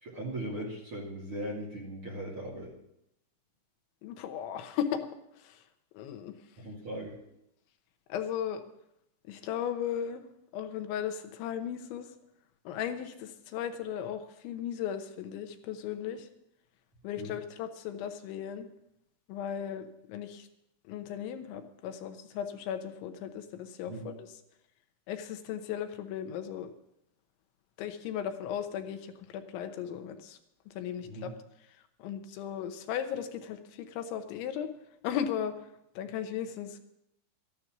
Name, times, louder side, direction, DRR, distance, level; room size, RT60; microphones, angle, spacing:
voice 1, 0.0-2.7 6.6-7.1 17.2-17.3 23.9-24.0 31.0-31.3, right 1 dB, 40° right, -3 dB, 2.1 m, -38 dB
voice 2, 4.0-5.0 5.4-5.6 5.9-6.3 8.1-8.6 9.3-10.2 10.5-12.1 12.7-16.3 17.0-18.7 19.3-20.5 20.9-24.3 25.1-26.7 27.8-30.4 30.7-31.3 32.0-34.7 35.0-35.5 36.0-36.8, left 9 dB, 80° left, 7 dB, 3.3 m, -36 dB
14.0 x 11.5 x 6.0 m, 0.80 s
omnidirectional pair, 5.4 m